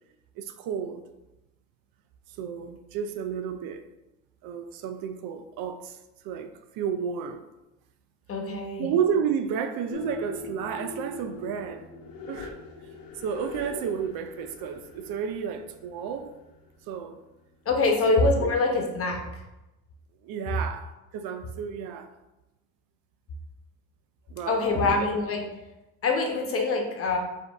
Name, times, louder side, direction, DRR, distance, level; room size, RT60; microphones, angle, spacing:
voice 1, 0.4-1.0 2.3-3.8 4.4-6.0 6.2-7.4 8.8-11.9 12.3-12.5 13.1-16.3 16.9-17.2 18.1-18.5 20.2-22.1 24.3-25.1, right 7 dB, 75° right, 0.6 m, -32 dB
voice 2, 8.3-8.9 17.6-19.2 24.5-25.4 26.0-27.2, left 3 dB, 40° left, 1.0 m, -24 dB
sound 1, 9.9-17.3, left 4 dB, 75° left, 0.9 m, -41 dB
5.0 x 2.7 x 3.4 m
cardioid pair, 100°, 35 cm